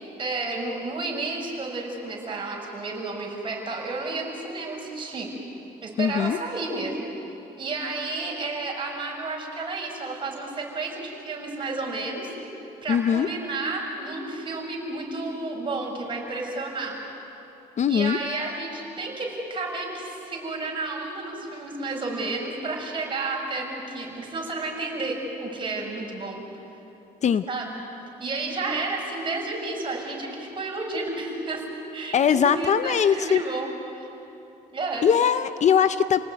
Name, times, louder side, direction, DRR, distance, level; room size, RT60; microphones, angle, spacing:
voice 1, 0.2-5.3 5.8-7.0 7.6-17.0 17.9-26.4 27.5-27.8 28.2-31.6 31.9-34.1 34.7-35.1, right 3 dB, 30° right, -1 dB, 6.8 m, -31 dB
voice 2, 6.0-6.4 12.9-13.3 17.8-18.2 27.2-27.4 32.1-33.4 35.0-36.2, left 8 dB, 45° left, 11 dB, 0.8 m, -21 dB
30.0 x 19.0 x 9.3 m, 3.0 s
cardioid pair, 110°, 17 cm